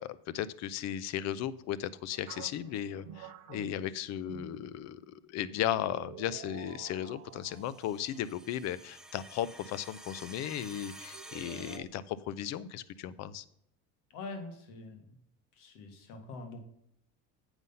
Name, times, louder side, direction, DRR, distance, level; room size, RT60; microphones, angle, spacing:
voice 1, 0.0-13.5, left 11 dB, 50° left, 18 dB, 0.6 m, -36 dB
sound 1, 2.1-3.2 5.5-8.8 11.1-11.9, right 10 dB, 35° right, 0.8 m, -51 dB
sound 2, 2.3-5.1 5.4-5.7 6.3-6.8, right 7 dB, 60° right, 0.8 m, -49 dB
sound 3, 7.5-11.8, right 1 dB, ahead, 0.5 m, -50 dB
voice 2, 14.1-15.2 15.5-16.7, left 3 dB, 70° left, 6 dB, 1.8 m, -44 dB
8.0 x 5.5 x 5.5 m, 0.73 s
cardioid pair, 135°, 34 cm